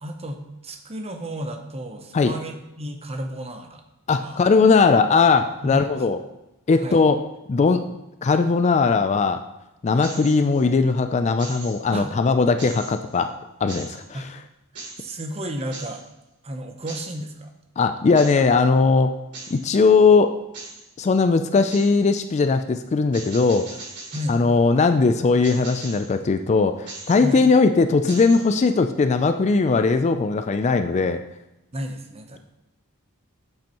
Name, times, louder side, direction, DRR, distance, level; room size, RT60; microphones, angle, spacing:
voice 1, 0.0-3.8 4.2-4.4 5.6-5.8 6.8-7.0 11.9-12.1 14.1-14.3 14.7-16.0 16.4-17.5 24.1-24.4 27.2-27.4 31.7-32.4, equal, 25° right, 5 dB, 0.8 m, -33 dB
voice 2, 4.1-6.2 6.7-7.2 7.5-7.8 8.2-9.4 9.8-13.3 13.6-14.3 17.8-19.1 19.5-20.4 21.0-23.7 24.3-31.2, left 4 dB, 30° left, 9 dB, 0.3 m, -19 dB
sound 1, 10.0-10.7 11.4-12.0 12.6-13.2 13.7-14.0 14.8-15.1 15.7-16.0 16.9-17.2 18.2-18.5 19.3-19.7 20.5-20.9 21.7-22.0 23.1-24.4 25.4-26.1 26.9-27.5 28.1-28.7, right 3 dB, 80° right, 2.8 m, -39 dB
8.8 x 7.7 x 3.0 m, 0.93 s
head